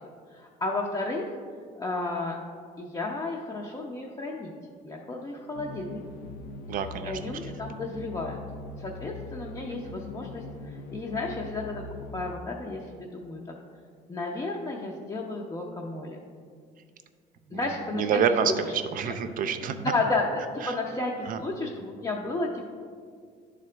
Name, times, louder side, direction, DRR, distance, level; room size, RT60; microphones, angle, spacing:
voice 1, 0.3-1.3 1.8-2.4 2.8-4.5 4.8-6.0 7.0-8.4 8.8-11.9 12.1-13.4 14.1-16.2 17.5-18.2 19.0-19.2 19.7-22.7, left 2 dB, 25° left, -2 dB, 0.6 m, -32 dB
sound 1, 5.5-12.3, left 3 dB, 80° left, 0.5 m, -41 dB
voice 2, 6.7-7.2 17.5-17.6 17.9-18.5 18.9-19.9 20.6-20.7 21.3-21.4, right 7 dB, 55° right, 8 dB, 0.5 m, -27 dB
10.5 x 3.8 x 3.3 m, 2.1 s
cardioid pair, 110°, 17 cm